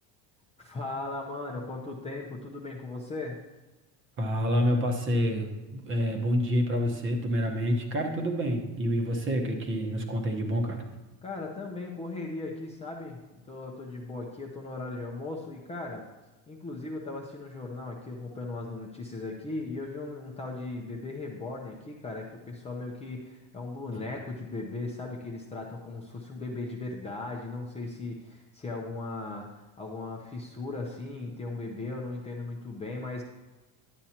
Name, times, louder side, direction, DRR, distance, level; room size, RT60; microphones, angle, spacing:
voice 1, 0.6-3.4 11.2-13.2 13.5-16.0 16.5-33.2, left 2 dB, 15° left, -2 dB, 0.6 m, -37 dB
voice 2, 4.2-10.8, equal, 30° right, 3 dB, 1.0 m, -28 dB
11.0 x 8.7 x 2.9 m, 1.2 s
cardioid pair, 165°, 43 cm